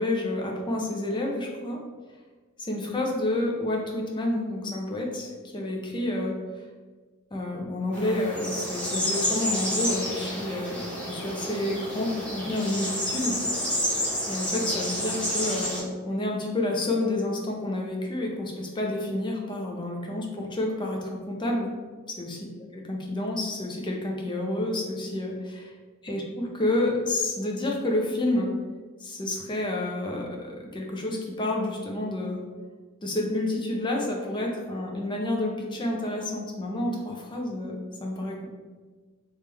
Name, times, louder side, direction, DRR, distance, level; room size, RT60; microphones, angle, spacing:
voice 1, 0.0-1.8 2.6-6.4 7.3-13.4 14.3-21.7 22.2-22.4 22.7-25.7 26.0-28.5 29.0-32.4 33.0-38.5, left 1 dB, 20° left, 0 dB, 0.6 m, -29 dB
sound 1, 7.9-15.8, equal, 5° left, 1.0 m, -30 dB
3.5 x 3.1 x 3.3 m, 1.4 s
head